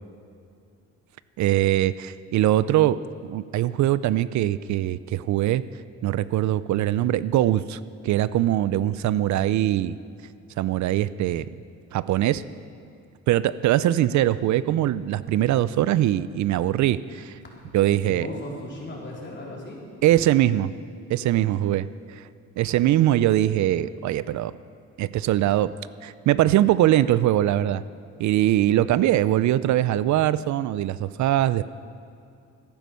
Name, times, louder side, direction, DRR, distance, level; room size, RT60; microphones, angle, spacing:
voice 1, 1.4-5.6 6.0-9.9 10.6-11.5 11.9-12.4 13.3-17.4 17.7-18.3 20.0-20.7 21.1-22.2 22.6-24.6 25.0-25.7 26.0-27.8 28.2-31.6, right 13 dB, 70° right, 17 dB, 0.4 m, -22 dB
voice 2, 17.9-19.8, left 1 dB, 40° left, -3 dB, 4.0 m, -37 dB
14.0 x 10.5 x 6.3 m, 2.4 s
cardioid pair, 90°, 30 cm